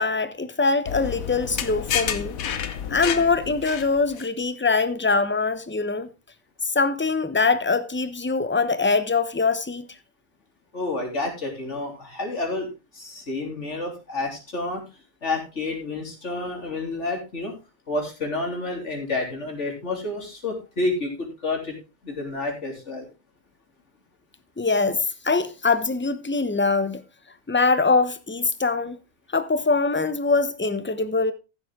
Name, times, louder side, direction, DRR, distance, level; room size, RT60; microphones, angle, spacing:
voice 1, 0.0-2.4 2.9-6.1 6.6-9.9 24.6-27.0 27.5-29.0 29.3-31.3, left 4 dB, 10° left, 0.7 m, -23 dB
sound 1, 0.9-4.3, left 8 dB, 85° left, 1.4 m, -30 dB
voice 2, 10.7-14.8 15.2-17.5 17.9-21.8 22.0-23.1, left 2 dB, 55° left, 3.7 m, -29 dB
14.0 x 7.8 x 3.6 m
omnidirectional pair, 1.4 m